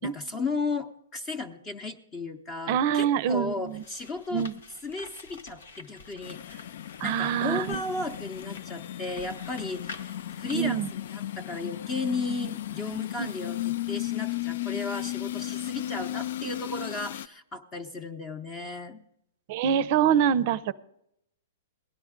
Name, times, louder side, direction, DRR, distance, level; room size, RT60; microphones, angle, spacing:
voice 1, 0.0-4.5 4.8-6.4 7.0-19.0, left 3 dB, 20° left, 6 dB, 0.8 m, -35 dB
voice 2, 2.7-3.8 4.3-4.5 7.0-7.8 10.5-10.9 13.2-13.3 19.5-20.7, right 8 dB, 50° right, 16 dB, 0.5 m, -25 dB
sound 1, 3.2-11.0, left 4 dB, 85° left, 1.4 m, -48 dB
sound 2, 6.2-17.3, left 14 dB, 65° left, 0.4 m, -35 dB
17.5 x 11.0 x 3.6 m, 0.77 s
hypercardioid pair, 145°, 0 cm